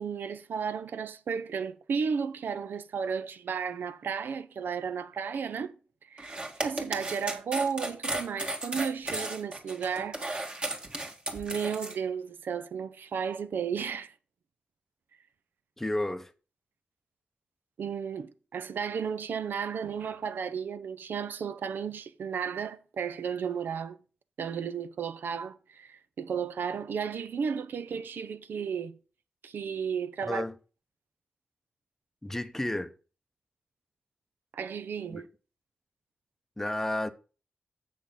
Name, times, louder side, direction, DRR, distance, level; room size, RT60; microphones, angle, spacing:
voice 1, 0.0-5.8 6.1-10.2 11.3-14.1 17.8-24.0 24.4-29.0 29.4-30.4 34.5-35.3, right 6 dB, 85° right, 0.6 m, -33 dB
sound 1, 6.2-11.9, right 2 dB, 30° right, 1.6 m, -34 dB
voice 2, 15.8-16.3 30.3-30.5 32.2-32.9 35.1-35.2 36.6-37.1, left 1 dB, 10° left, 0.6 m, -31 dB
7.5 x 6.3 x 5.5 m
wide cardioid pair, 130°, 3 cm